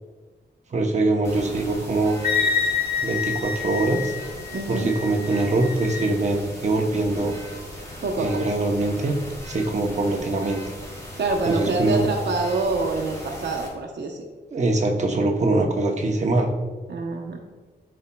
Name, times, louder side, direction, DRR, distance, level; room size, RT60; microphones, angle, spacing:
voice 1, 0.7-2.2 3.0-4.1 4.7-7.4 8.2-9.2 9.5-10.6 11.5-12.1 14.5-16.5, right 2 dB, 40° right, 2 dB, 0.8 m, -23 dB
sound 1, 1.2-13.7, equal, 20° left, 1.9 m, -39 dB
Wind instrument woodwind instrument, 2.2-6.1, left 6 dB, 55° left, 1.2 m, -27 dB
voice 2, 4.5-4.9 8.0-8.4 11.2-14.3 16.9-17.4, right 3 dB, 80° right, 0 dB, 0.8 m, -26 dB
12.5 x 4.2 x 2.2 m, 1.3 s
wide cardioid pair, 175°, 18 cm